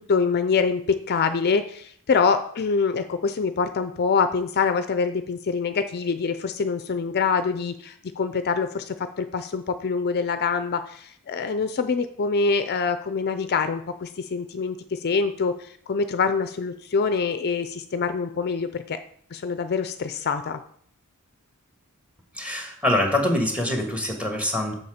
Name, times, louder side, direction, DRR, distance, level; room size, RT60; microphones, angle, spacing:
voice 1, 0.0-19.0 19.3-20.6, left 5 dB, 45° left, 10 dB, 0.5 m, -25 dB
voice 2, 22.3-24.7, left 1 dB, 5° right, 2 dB, 1.6 m, -24 dB
7.0 x 6.8 x 5.0 m, 0.62 s
head